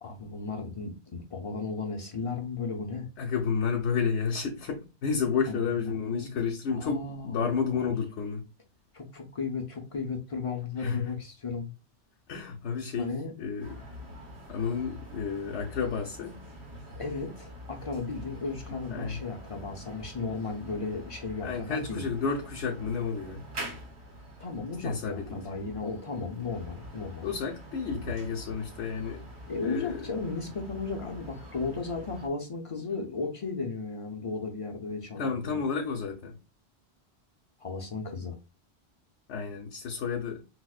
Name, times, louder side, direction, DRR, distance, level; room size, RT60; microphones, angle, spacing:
voice 1, 0.0-3.1 5.5-6.4 6.7-8.0 8.9-11.8 13.0-13.3 17.0-22.0 24.4-27.3 29.5-35.6 37.6-38.4, left 4 dB, 45° left, 0.5 m, -35 dB
voice 2, 3.2-8.4 10.8-11.0 12.3-13.1 13.4-13.7 14.5-16.4 18.9-19.2 21.4-23.4 24.8-25.5 27.2-29.3 29.6-30.0 35.2-36.3 39.3-40.4, left 6 dB, 85° left, 0.9 m, -31 dB
sound 1, 13.6-32.3, equal, 85° right, 1.4 m, -45 dB
4.5 x 2.1 x 2.3 m
omnidirectional pair, 1.1 m